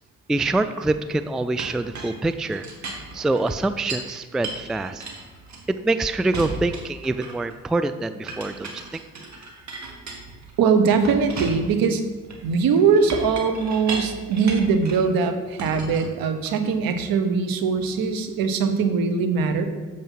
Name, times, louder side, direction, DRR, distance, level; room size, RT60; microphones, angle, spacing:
voice 1, 0.3-2.7 3.1-5.0 5.7-9.0, right 2 dB, ahead, 11 dB, 0.3 m, -25 dB
Chink clink, 1.6-4.1 4.4-5.9 6.3-7.6 8.3-10.6 11.0-15.1 15.6-16.7, right 3 dB, 45° right, 1.8 m, -36 dB
voice 2, 10.6-12.0 12.4-19.6, right 5 dB, 65° right, 8 dB, 1.0 m, -21 dB
7.3 x 5.2 x 5.6 m, 1.3 s
hypercardioid pair, 50°, 37 cm